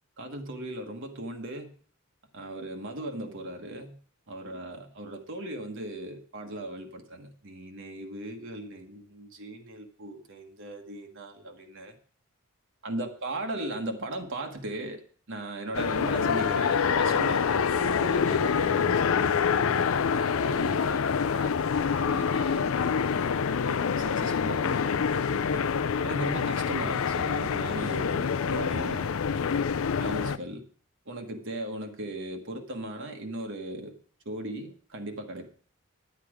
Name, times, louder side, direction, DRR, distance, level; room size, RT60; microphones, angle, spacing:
voice 1, 0.2-1.7 2.3-4.0 4.3-12.0 12.8-17.5 17.7-25.6 26.0-29.1 29.5-29.6 30.0-30.6 31.0-33.9 34.2-35.5, right 1 dB, 60° right, 3 dB, 1.3 m, -38 dB
sound 1, 15.7-30.4, left 6 dB, 70° left, 0.5 m, -26 dB
10.5 x 8.4 x 4.9 m, 0.44 s
head